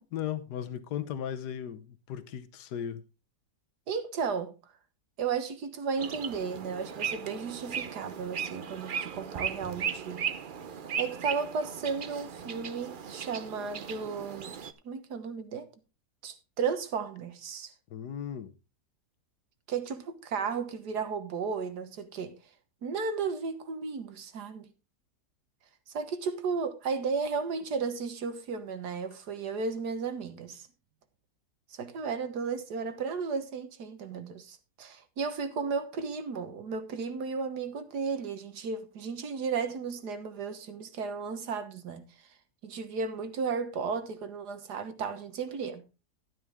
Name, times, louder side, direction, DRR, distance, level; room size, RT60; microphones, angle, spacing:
voice 1, 0.1-3.0 17.9-18.5, left 9 dB, 80° left, 1.5 m, -36 dB
voice 2, 3.9-4.5 5.2-10.3 11.0-14.6 14.9-15.7 16.2-17.7 19.7-22.3 22.8-24.7 25.9-30.7 31.7-42.1 42.6-45.8, right 5 dB, 75° right, 1.9 m, -34 dB
sound 1, 6.0-14.7, right 7 dB, 50° right, 0.6 m, -37 dB
12.5 x 9.4 x 3.5 m
omnidirectional pair, 1.7 m